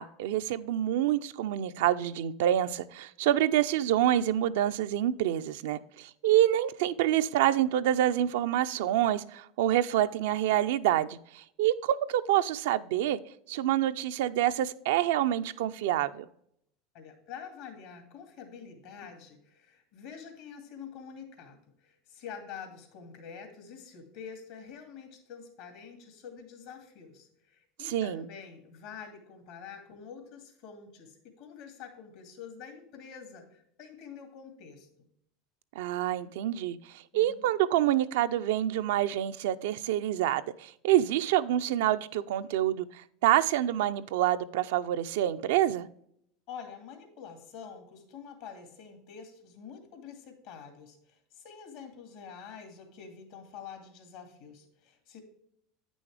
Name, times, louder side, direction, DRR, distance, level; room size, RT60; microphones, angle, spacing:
voice 1, 0.0-13.2 13.5-16.2 27.8-28.3 35.8-36.8 37.1-45.9, right 12 dB, 75° right, 0.4 m, -27 dB
voice 2, 16.9-35.1 37.1-37.4 46.5-55.2, left 6 dB, 70° left, 2.2 m, -47 dB
8.8 x 6.2 x 3.3 m
hypercardioid pair, 100°, 0 cm